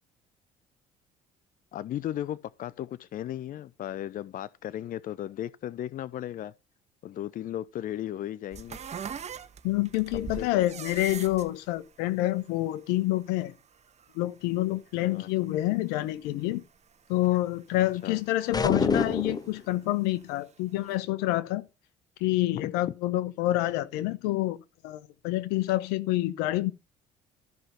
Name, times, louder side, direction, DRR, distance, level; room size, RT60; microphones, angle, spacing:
voice 1, 1.7-6.5 7.0-8.8 10.1-10.7 15.0-15.5 18.0-18.2 22.5-22.7, left 12 dB, 55° left, 0.7 m, -36 dB
sound 1, 8.5-17.0 17.2-18.8 19.3-20.5 20.8-20.9, right 7 dB, 45° right, 1.4 m, -43 dB
voice 2, 9.6-13.5 14.1-16.6 17.1-21.6 22.2-24.6 24.8-26.7, left 16 dB, 85° left, 1.1 m, -27 dB
sound 2, 18.5-19.6, left 4 dB, 25° left, 1.1 m, -26 dB
13.5 x 5.8 x 6.6 m
supercardioid pair, 70°, 16 cm